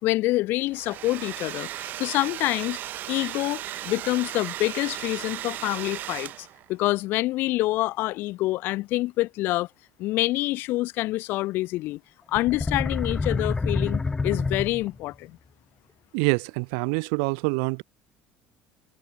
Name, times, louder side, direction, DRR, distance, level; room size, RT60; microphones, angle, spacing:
voice 1, 0.0-2.8 3.1-9.7 10.0-12.0 12.3-15.4, left 18 dB, 65° left, 3.1 m, -27 dB
Domestic sounds home sounds, 0.6-6.7, right 13 dB, 50° right, 3.3 m, -36 dB
sound 1, 12.3-15.1, left 3 dB, 15° left, 1.7 m, -27 dB
voice 2, 16.1-17.8, right 40 dB or more, 90° right, 2.7 m, -25 dB
cardioid pair, 140°, 4 cm